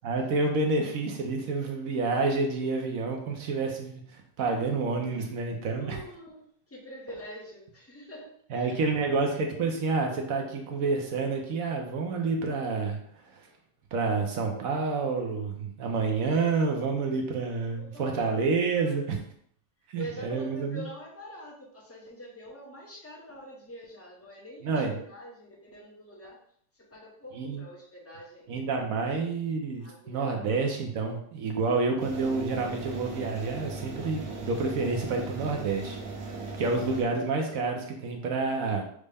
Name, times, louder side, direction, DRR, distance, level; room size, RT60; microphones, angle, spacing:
voice 1, 0.0-6.0 8.5-13.0 13.3-13.5 13.9-19.2 19.9-20.8 24.6-25.0 27.3-27.6 28.5-36.2 36.6-38.8, right 4 dB, 65° right, 2 dB, 0.9 m, -29 dB
voice 2, 5.8-8.8 17.8-18.3 18.7-19.1 19.9-26.4 26.8-29.0 29.8-30.4, equal, 15° left, -3 dB, 0.6 m, -45 dB
sound 1, 32.0-37.0, right 3 dB, 85° right, 1.6 m, -38 dB
6.3 x 2.1 x 3.4 m, 0.64 s
omnidirectional pair, 1.9 m